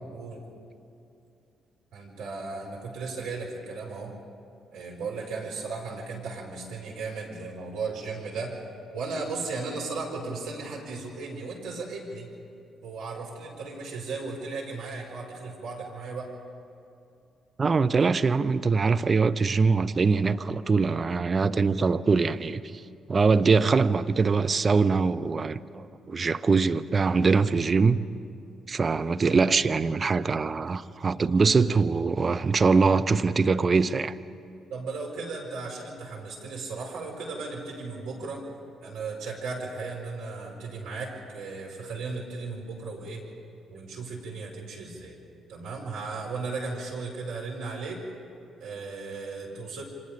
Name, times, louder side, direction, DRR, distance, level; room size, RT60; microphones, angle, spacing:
voice 1, 0.1-0.4 1.9-4.2 4.7-8.5 8.9-12.3 12.8-16.3 34.7-38.5 38.8-43.2 43.7-45.2 45.5-48.0 48.6-49.8, right 4 dB, 65° right, 5.1 m, -36 dB
voice 2, 17.6-22.6 23.1-28.0 28.7-34.1, right 4 dB, 35° right, 0.8 m, -23 dB
29.0 x 25.0 x 5.1 m
figure-of-eight pair, 40°, 0 cm